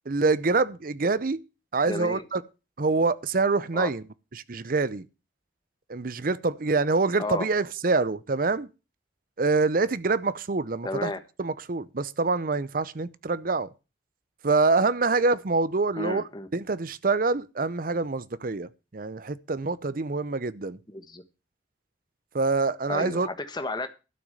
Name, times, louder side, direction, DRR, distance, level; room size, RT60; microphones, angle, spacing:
voice 1, 0.1-1.4 1.7-2.4 2.8-4.0 4.3-5.1 5.9-8.7 9.4-11.1 11.4-13.7 14.4-16.2 16.5-20.8 22.3-23.3, right 3 dB, 50° right, 0.7 m, -25 dB
voice 2, 1.9-2.2 3.7-3.9 7.2-7.4 10.8-11.2 16.0-16.5 20.9-21.2 22.9-23.9, left 2 dB, 25° left, 1.3 m, -32 dB
12.0 x 6.1 x 7.8 m
head